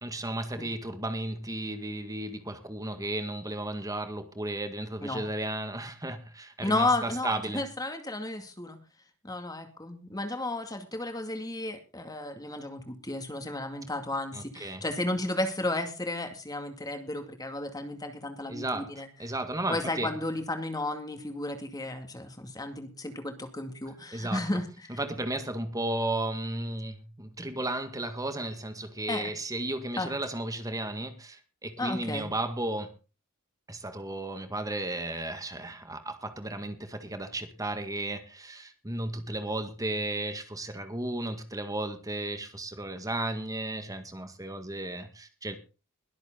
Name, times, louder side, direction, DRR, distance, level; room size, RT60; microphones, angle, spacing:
voice 1, 0.0-7.6 14.3-14.8 18.5-18.9 19.2-20.1 24.1-24.4 25.0-32.9 33.7-45.5, right 1 dB, 15° right, 8 dB, 1.8 m, -34 dB
voice 2, 6.6-8.8 9.2-19.1 19.7-25.0 29.1-29.3 30.0-30.1 31.8-32.3, left 2 dB, 20° left, 6 dB, 2.3 m, -33 dB
22.0 x 8.0 x 3.9 m, 0.32 s
head